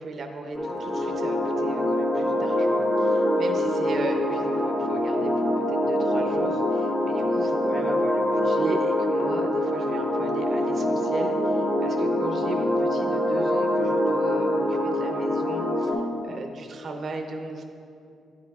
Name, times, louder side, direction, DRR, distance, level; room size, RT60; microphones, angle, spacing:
voice 1, 0.0-16.0 16.2-17.6, right 2 dB, 40° right, 3 dB, 0.5 m, -36 dB
sound 1, 0.5-15.9, left 1 dB, 10° left, 0.8 m, -24 dB
9.8 x 5.3 x 3.5 m, 2.5 s
cardioid pair, 150°, 0 cm